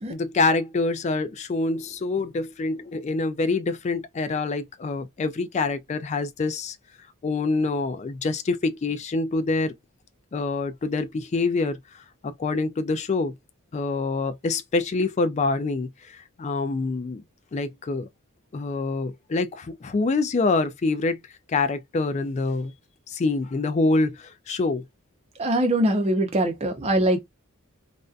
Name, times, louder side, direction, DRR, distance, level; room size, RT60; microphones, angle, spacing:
voice 1, 0.1-6.8 7.2-9.7 10.3-13.4 13.7-17.2 17.5-18.1 18.5-21.2 21.5-22.7 23.1-24.8, left 3 dB, 30° left, 0.3 m, -26 dB
voice 2, 25.4-27.2, right 1 dB, 30° right, 0.6 m, -22 dB
2.5 x 2.2 x 2.4 m
head